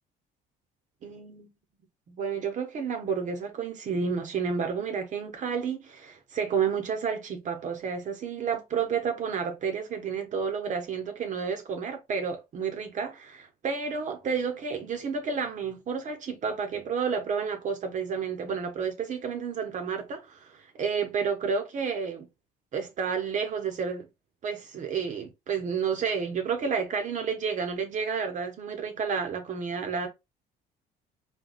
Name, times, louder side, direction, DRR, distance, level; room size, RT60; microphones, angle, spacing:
voice 1, 1.0-1.5 2.1-22.3 22.7-24.1 24.4-30.1, right 6 dB, 45° right, 0.7 m, -31 dB
3.8 x 2.2 x 2.4 m
cardioid pair, 110°, 17 cm